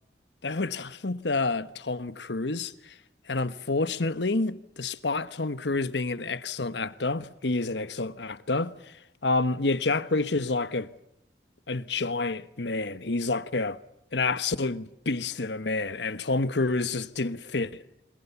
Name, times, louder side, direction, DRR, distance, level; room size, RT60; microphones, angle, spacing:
voice 1, 0.4-2.9 3.3-9.0 9.2-10.9 11.7-13.8 14.1-17.8, left 3 dB, 85° left, 1.2 m, -29 dB
28.0 x 25.5 x 7.1 m
head